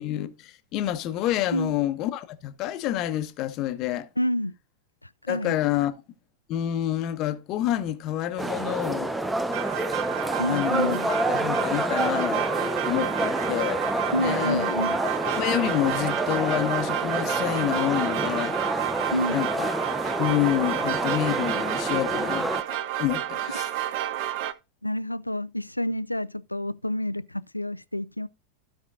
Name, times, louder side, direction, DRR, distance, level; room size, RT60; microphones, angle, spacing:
voice 1, 0.0-4.1 5.3-5.9 6.5-9.1 10.4-13.8 14.2-14.8 15.1-18.6 19.3-19.8 20.2-23.7, left 13 dB, 40° left, 0.8 m, -28 dB
voice 2, 4.2-4.5 5.3-5.6 10.4-11.1 14.1-15.0 19.1-19.4 24.8-28.3, left 1 dB, 85° left, 0.4 m, -28 dB
sound 1, 8.4-22.6, right 1 dB, 5° right, 0.6 m, -28 dB
sound 2, 9.5-24.5, right 13 dB, 45° right, 0.7 m, -31 dB
15.5 x 5.3 x 2.5 m
figure-of-eight pair, 90°, 0 cm